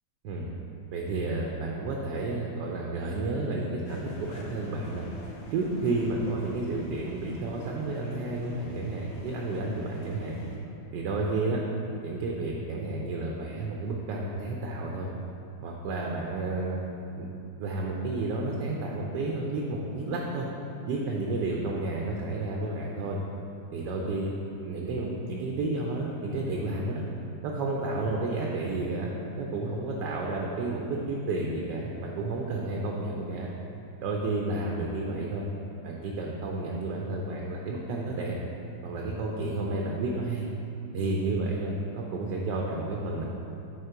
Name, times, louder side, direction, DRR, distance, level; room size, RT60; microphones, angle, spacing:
voice 1, 0.9-5.1 5.5-10.4 10.9-11.6 12.0-15.1 15.6-16.8 17.1-17.3 17.6-20.5 20.9-23.2 23.7-24.3 24.6-27.0 27.4-33.5 34.0-35.4 35.8-38.4 38.8-40.5 40.9-43.2, right 2 dB, 75° right, -1 dB, 1.2 m, -31 dB
sound 1, 3.8-10.6, left 1 dB, 60° left, 0.7 m, -44 dB
6.5 x 4.4 x 4.6 m, 2.7 s
omnidirectional pair, 2.0 m